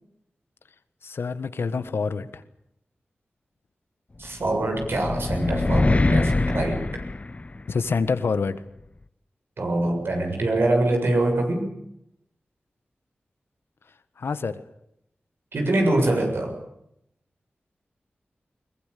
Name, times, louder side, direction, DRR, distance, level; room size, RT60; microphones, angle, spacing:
voice 1, 1.0-2.4 7.7-8.6 14.2-14.6, left 5 dB, 85° left, 12 dB, 1.5 m, -26 dB
voice 2, 4.2-6.8 9.6-11.7 15.5-16.5, right 2 dB, 75° right, 3 dB, 7.2 m, -24 dB
sound 1, 4.4-7.9, left 2 dB, 35° left, 0.9 m, -24 dB
22.0 x 20.5 x 8.6 m, 0.79 s
wide cardioid pair, 60°, 4 cm